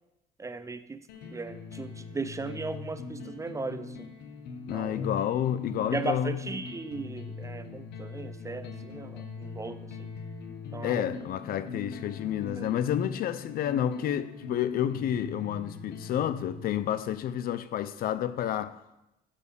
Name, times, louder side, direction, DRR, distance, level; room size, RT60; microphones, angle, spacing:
voice 1, 0.4-1.0 1.3-4.0 4.7-5.1 5.9-10.1 10.7-11.1 12.6-12.7, right 3 dB, 20° right, 0.4 m, -37 dB
sound 1, 1.1-17.0, left 4 dB, 80° left, 1.1 m, -41 dB
voice 2, 4.7-6.4 10.8-18.8, left 10 dB, 60° left, 0.6 m, -30 dB
7.5 x 5.5 x 6.7 m
cardioid pair, 110°, 17 cm